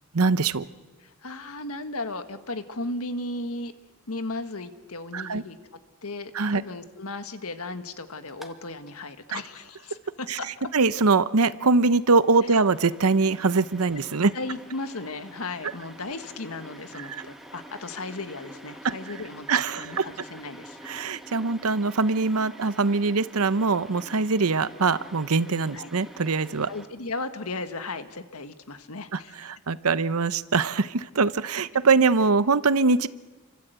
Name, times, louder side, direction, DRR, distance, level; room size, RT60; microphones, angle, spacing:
voice 1, 0.1-0.6 5.1-5.4 6.3-6.6 9.3-9.4 10.3-10.4 10.7-14.3 17.1-17.3 18.8-18.9 19.5-20.1 20.8-26.7 29.1-33.1, right 4 dB, 80° right, 15 dB, 0.9 m, -23 dB
voice 2, 1.0-3.7 4.1-5.6 6.0-10.5 12.5-12.6 14.3-19.5 19.8-20.8 25.7-25.9 26.7-29.4, left 2 dB, 80° left, 9 dB, 1.7 m, -35 dB
sound 1, 8.3-8.5 8.9-9.0 11.6-26.9, equal, ahead, 1.9 m, -47 dB
29.5 x 24.5 x 8.1 m, 1.3 s
head